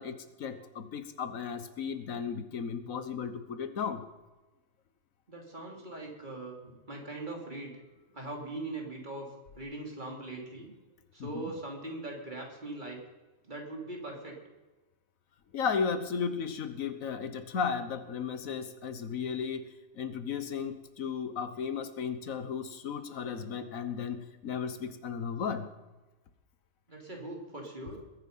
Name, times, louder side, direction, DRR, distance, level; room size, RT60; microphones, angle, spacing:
voice 1, 0.0-4.0 11.2-11.5 15.5-19.6 20.0-25.6, left 6 dB, 90° left, 10 dB, 1.5 m, -35 dB
voice 2, 5.3-7.8 8.1-9.3 9.6-10.7 11.1-13.0 13.5-14.4 26.9-28.0, right 2 dB, 35° right, 0 dB, 3.2 m, -41 dB
21.5 x 9.2 x 5.5 m, 1.2 s
omnidirectional pair, 1.4 m